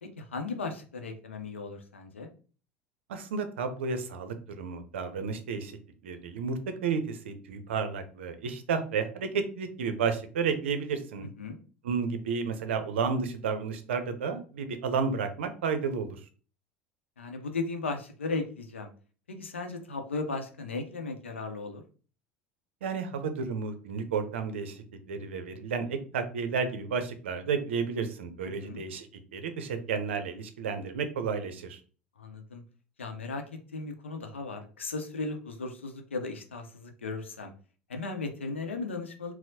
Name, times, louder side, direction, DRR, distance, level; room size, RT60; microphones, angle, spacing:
voice 1, 0.0-2.3 11.4-11.6 17.2-18.9 19.3-21.8 28.4-28.8 32.2-32.6 33.0-33.4 33.7-37.5 37.9-39.3, left 3 dB, 90° left, 5 dB, 0.6 m, -36 dB
voice 2, 3.1-5.7 6.0-11.3 11.8-16.2 22.8-29.1 29.3-31.8, right 5 dB, 75° right, 8 dB, 0.5 m, -32 dB
4.3 x 2.0 x 2.7 m, 0.38 s
hypercardioid pair, 75°, 6 cm